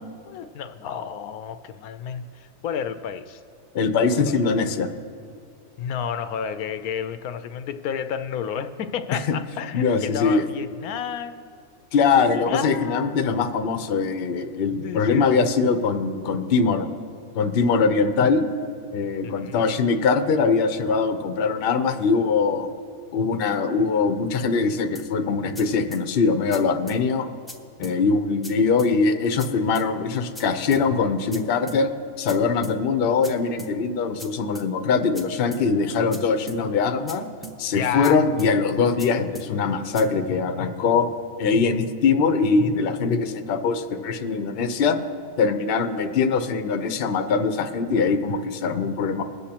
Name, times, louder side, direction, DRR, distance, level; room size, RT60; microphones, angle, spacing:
voice 1, 0.3-3.4 4.1-4.3 5.8-11.6 12.3-13.2 14.8-15.5 19.2-19.6 37.7-38.2, left 8 dB, 80° left, 10 dB, 1.0 m, -31 dB
voice 2, 3.7-4.9 9.7-10.4 11.9-16.9 17.3-18.5 18.9-22.7 23.1-27.3 27.8-31.9 32.2-37.3 37.6-41.1 41.4-45.0 45.4-49.2, left 4 dB, 50° left, 7 dB, 0.7 m, -22 dB
sound 1, 24.9-25.1 25.5-25.6 25.9-26.0 26.5-26.6 26.9-27.0 27.5-27.6 27.8-28.0 28.4-28.5 28.8-28.9 29.4-29.5 29.7-29.9 30.3-30.4 30.7-30.8 31.3-31.4 31.7-31.8 32.3-32.4 32.6-32.8 33.2-33.3 33.6-33.7 34.2-34.3 34.5-34.7 35.1-35.2 35.5-35.6 36.1-36.2 36.5-36.6 37.1-37.2 37.4-37.6 38.0-38.1 38.4-38.5 39.0-39.1 39.3-39.5 39.9-40.0, right 2 dB, ahead, 0.4 m, -38 dB
22.0 x 8.2 x 2.9 m, 2.3 s
omnidirectional pair, 1.5 m